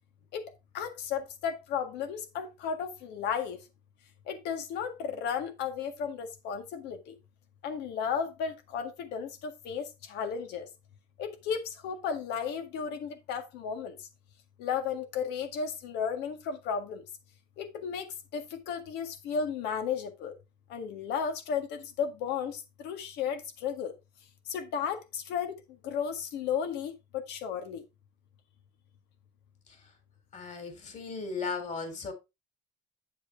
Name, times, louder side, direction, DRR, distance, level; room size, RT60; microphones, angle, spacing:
voice 1, 0.7-3.6 4.3-7.1 7.6-10.7 11.2-14.0 14.6-17.0 17.6-20.3 20.7-23.9 24.5-25.5 25.8-27.8, left 7 dB, 90° left, 1.8 m, -34 dB
voice 2, 30.3-32.1, left 4 dB, 45° left, 3.7 m, -36 dB
7.7 x 7.6 x 3.5 m
cardioid pair, 110°, 17 cm